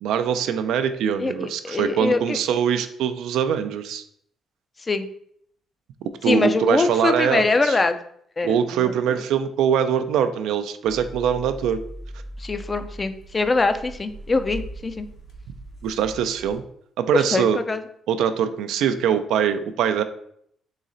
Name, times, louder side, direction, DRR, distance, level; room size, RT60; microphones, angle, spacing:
voice 1, 0.0-4.0 6.2-7.8 8.4-11.8 15.8-16.6 17.0-17.6 18.1-20.0, right 8 dB, 85° right, 9 dB, 0.4 m, -23 dB
voice 2, 1.2-2.4 4.9-5.1 6.3-8.0 8.4-9.2 12.4-15.1 17.1-17.8, left 3 dB, 30° left, 9 dB, 0.4 m, -23 dB
sound 1, 10.8-16.6, right 1 dB, 65° left, 0.9 m, -39 dB
4.0 x 3.1 x 3.8 m, 0.68 s
cardioid pair, 90°, 0 cm